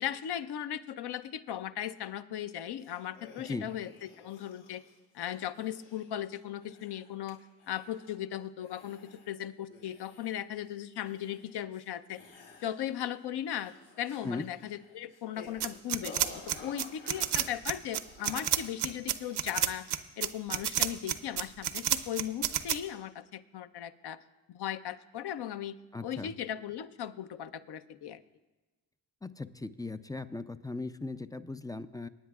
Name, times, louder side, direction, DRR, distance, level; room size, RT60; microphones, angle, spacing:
voice 1, 0.0-3.9 4.2-4.8 5.1-7.4 7.7-12.2 12.6-16.2 16.5-19.9 20.2-24.2 24.5-25.8 26.0-28.2, left 10 dB, 55° left, 12 dB, 0.8 m, -37 dB
sound 1, 2.8-7.3 7.6-8.3 8.6-9.3 9.7-10.6 10.9-11.9 12.1-13.1 13.4-18.7 19.1-19.4, left 4 dB, 80° left, 2.4 m, -53 dB
sound 2, 15.6-22.8, right 11 dB, 55° right, 0.8 m, -30 dB
voice 2, 25.9-26.3 29.2-32.1, left 3 dB, 10° left, 12 dB, 0.4 m, -38 dB
24.0 x 9.4 x 2.4 m, 1.2 s
hypercardioid pair, 50°, 48 cm